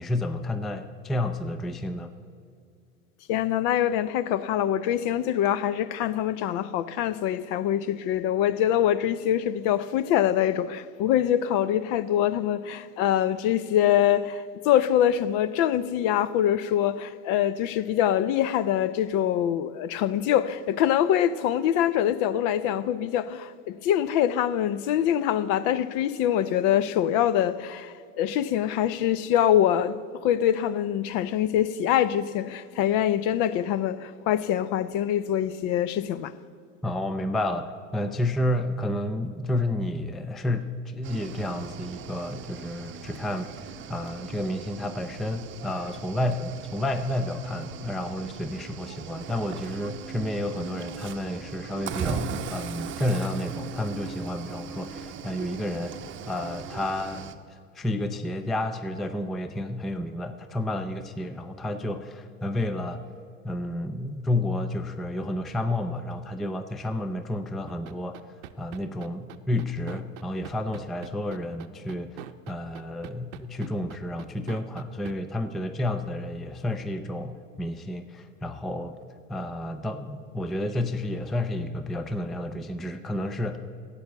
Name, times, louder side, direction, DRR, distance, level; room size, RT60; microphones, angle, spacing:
voice 1, 0.0-2.1 36.8-43.5 43.9-56.0 56.3-57.2 57.5-63.0 63.4-68.2 68.6-78.9 79.3-83.6, left 1 dB, ahead, 0.3 m, -30 dB
voice 2, 3.3-36.4, left 10 dB, 50° left, 0.6 m, -24 dB
Cricket / Waves surf, 41.0-57.3, right 5 dB, 30° right, 0.8 m, -38 dB
sound 1, 67.7-75.1, right 13 dB, 60° right, 0.7 m, -42 dB
11.0 x 8.5 x 7.8 m
hypercardioid pair, 90°, 40 cm